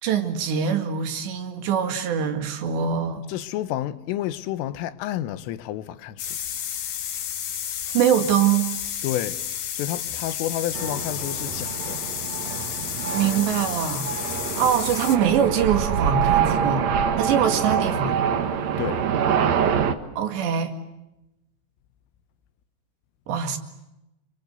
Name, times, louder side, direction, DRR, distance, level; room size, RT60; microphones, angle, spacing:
voice 1, 0.0-3.2 7.9-8.7 13.1-14.1 14.6-16.9 17.2-18.2 20.2-20.7 23.3-23.6, right 8 dB, 65° right, 4.1 m, -23 dB
voice 2, 3.3-6.3 9.0-9.4 9.7-12.0 18.8-19.0, left 13 dB, 85° left, 3.7 m, -30 dB
sound 1, 6.2-15.2, left 9 dB, 60° left, 3.6 m, -31 dB
sound 2, 10.7-19.9, right 8 dB, 90° right, 1.5 m, -25 dB
30.0 x 24.0 x 8.1 m
omnidirectional pair, 5.6 m